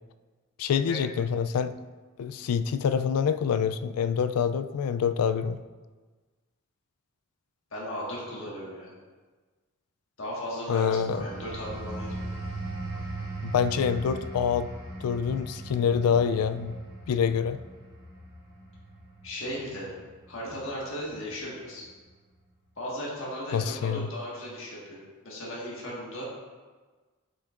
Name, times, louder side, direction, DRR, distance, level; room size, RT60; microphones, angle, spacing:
voice 1, 0.6-1.8 2.2-5.6 10.7-11.3 13.4-14.7 15.0-16.7 17.1-17.6 23.5-24.1, left 7 dB, 85° left, 12 dB, 0.3 m, -26 dB
voice 2, 7.7-8.9 10.2-12.3 19.2-19.9 20.3-21.9 22.8-25.0 25.2-26.2, equal, 60° left, -5 dB, 1.6 m, -36 dB
sound 1, 10.9-21.3 21.7-22.0, right 2 dB, 25° right, 2.1 m, -39 dB
7.7 x 6.5 x 2.5 m, 1.4 s
head